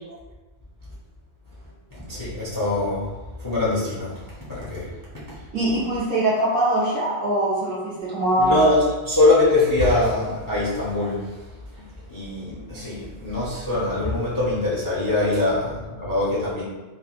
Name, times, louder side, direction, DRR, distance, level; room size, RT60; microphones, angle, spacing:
voice 1, 2.1-3.1 3.4-4.2 4.5-4.9 5.3-5.4 8.4-11.3 12.1-16.6, left 2 dB, 20° left, -9 dB, 0.6 m, -22 dB
voice 2, 5.5-8.7, right 1 dB, 50° right, -7 dB, 0.9 m, -22 dB
3.4 x 2.2 x 2.5 m, 1.2 s
omnidirectional pair, 1.3 m